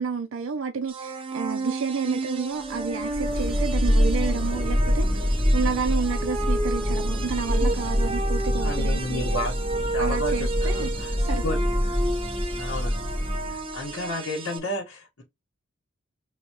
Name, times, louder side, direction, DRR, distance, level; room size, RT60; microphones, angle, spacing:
voice 1, 0.0-9.2 10.0-10.9 11.2-11.6, right 5 dB, 70° right, 0.5 m, -30 dB
sound 1, 0.9-14.6, right 2 dB, 25° right, 0.6 m, -32 dB
Thunder, 2.8-13.8, equal, 10° right, 2.4 m, -25 dB
voice 2, 8.6-9.5 9.9-11.6 12.1-12.2 12.6-13.1 13.5-15.2, left 1 dB, 75° left, 1.6 m, -32 dB
3.8 x 2.8 x 3.0 m
head